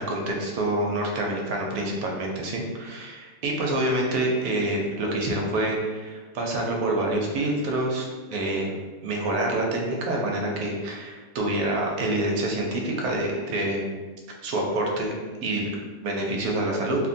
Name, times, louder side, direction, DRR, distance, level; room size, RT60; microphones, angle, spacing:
voice 1, 0.0-8.7 9.0-13.9 14.4-15.1 15.4-17.1, right 1 dB, 75° right, -1 dB, 1.0 m, -27 dB
3.0 x 2.1 x 2.6 m, 1.3 s
omnidirectional pair, 1.7 m